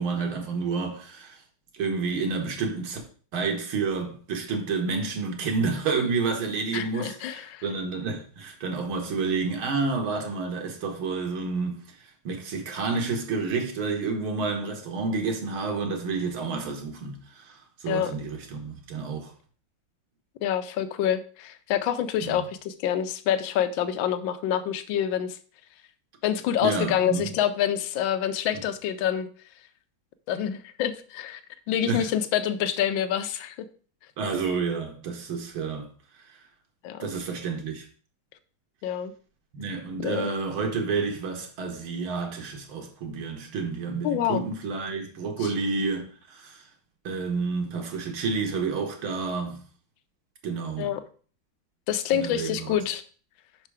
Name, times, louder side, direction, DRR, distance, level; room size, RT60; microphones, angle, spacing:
voice 1, 0.0-1.4 1.7-3.0 3.3-11.8 12.2-19.3 22.2-22.4 26.6-27.3 31.9-32.1 34.2-35.9 36.3-36.4 37.0-37.9 39.5-46.6 47.0-49.6 50.4-50.9 52.1-52.8, right 4 dB, 85° right, 2.1 m, -29 dB
voice 2, 6.7-7.6 17.9-18.1 20.4-25.4 26.2-29.3 30.3-31.4 31.7-33.6 36.8-37.1 38.8-39.1 40.0-40.3 44.0-44.4 45.4-45.5 50.8-51.0 51.9-53.0, left 10 dB, 75° left, 1.4 m, -27 dB
5.6 x 4.8 x 4.7 m
omnidirectional pair, 2.2 m